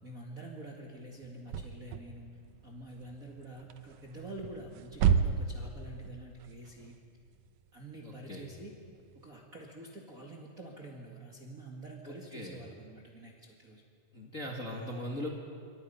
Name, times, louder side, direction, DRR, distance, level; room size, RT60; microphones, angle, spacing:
voice 1, 0.0-2.3 2.6-7.0 7.7-8.8 9.1-13.8 14.7-15.0, right 2 dB, 30° right, -1 dB, 2.0 m, -47 dB
sound 1, 1.2-9.3, right 7 dB, 70° right, 2.1 m, -33 dB
voice 2, 8.0-8.5 12.0-12.6 14.1-15.3, left 1 dB, 25° left, -1 dB, 2.0 m, -40 dB
27.5 x 25.5 x 5.7 m, 2.4 s
omnidirectional pair, 4.1 m